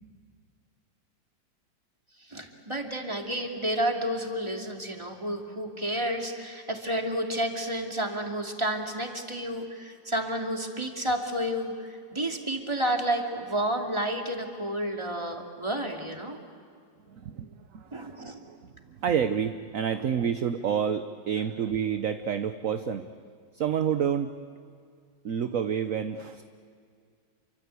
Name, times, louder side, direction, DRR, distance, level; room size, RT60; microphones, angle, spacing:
voice 1, 2.3-16.4 17.9-18.4 19.9-20.1, right 1 dB, 15° right, 2 dB, 2.7 m, -31 dB
voice 2, 17.1-18.6 19.0-23.0 23.5-24.3 25.2-26.4, right 8 dB, 55° right, 9 dB, 1.1 m, -29 dB
29.0 x 24.5 x 8.4 m, 2.2 s
omnidirectional pair, 2.0 m